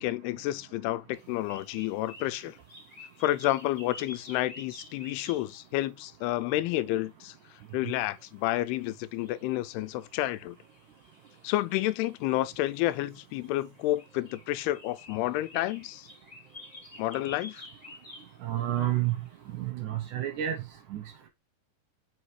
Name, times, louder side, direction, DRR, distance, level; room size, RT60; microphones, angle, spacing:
voice 1, 0.0-2.6 3.2-7.3 7.7-10.6 11.4-16.1 17.0-17.6, left 16 dB, 90° left, 2.6 m, -30 dB
sound 1, 1.1-5.5 6.2-19.5, left 2 dB, 20° left, 1.2 m, -51 dB
voice 2, 18.4-19.2 19.5-20.6 20.9-21.3, right 13 dB, 75° right, 1.9 m, -30 dB
7.3 x 4.7 x 3.2 m
omnidirectional pair, 4.5 m